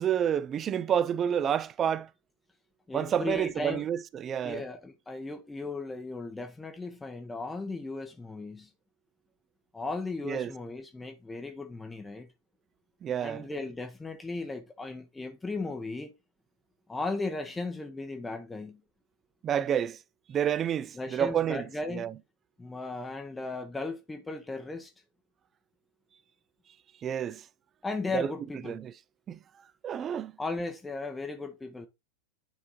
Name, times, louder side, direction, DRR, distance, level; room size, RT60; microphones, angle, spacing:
voice 1, 0.0-2.1 2.9-4.6 10.2-10.5 13.0-13.5 19.4-20.0 20.3-21.6 21.9-22.1 27.0-27.4 28.1-28.3 28.7-28.9 29.3-29.4 29.8-30.3, right 9 dB, 25° right, 0.4 m, -29 dB
voice 2, 2.9-3.9 4.4-8.7 9.7-12.3 13.2-16.1 16.9-18.8 20.9-22.1 22.6-24.9 27.8-28.8 30.4-31.9, left 3 dB, 10° left, 0.7 m, -36 dB
10.0 x 3.5 x 2.8 m
figure-of-eight pair, 90°, 0 cm